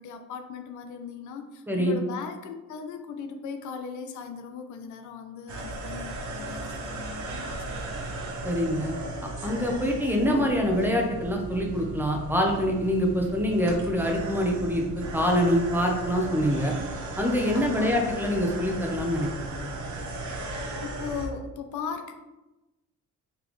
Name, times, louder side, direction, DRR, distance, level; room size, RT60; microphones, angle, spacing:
voice 1, 0.0-7.9 17.5-18.0 20.8-22.2, left 6 dB, 75° left, 7 dB, 0.5 m, -38 dB
voice 2, 1.7-2.0 8.4-9.0 9.4-16.7 17.2-19.7, equal, 5° right, 0 dB, 0.8 m, -25 dB
sound 1, 5.5-21.3, right 2 dB, 70° right, 1.0 m, -36 dB
4.1 x 3.3 x 3.1 m, 1.1 s
cardioid pair, 90°, 30 cm